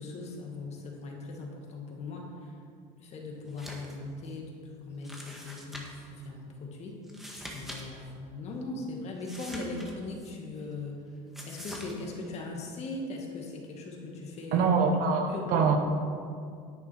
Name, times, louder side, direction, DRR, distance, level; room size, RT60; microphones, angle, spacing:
voice 1, 0.0-2.5 3.0-7.0 7.5-11.1 11.4-14.7 15.3-15.8, left 3 dB, 40° left, 0 dB, 2.2 m, -39 dB
sound 1, 3.5-4.0 4.3-4.4 5.0-6.1 7.0-7.8 8.1-8.2 9.2-10.3 11.3-11.9, equal, ahead, 1.7 m, -44 dB
voice 2, 14.5-15.8, right 5 dB, 60° right, 4 dB, 1.4 m, -24 dB
10.5 x 9.2 x 4.5 m, 2.3 s
supercardioid pair, 120°, 16 cm